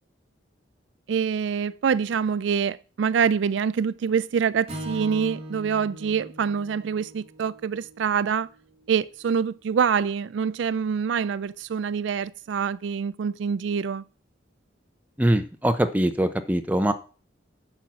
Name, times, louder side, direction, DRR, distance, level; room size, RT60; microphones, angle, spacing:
voice 1, 1.1-8.5 8.9-14.0, right 6 dB, 75° right, 0.3 m, -25 dB
Strum, 4.7-9.0, right 1 dB, 30° right, 2.8 m, -40 dB
voice 2, 15.2-16.9, right 1 dB, 10° right, 0.7 m, -22 dB
8.9 x 5.8 x 6.2 m
head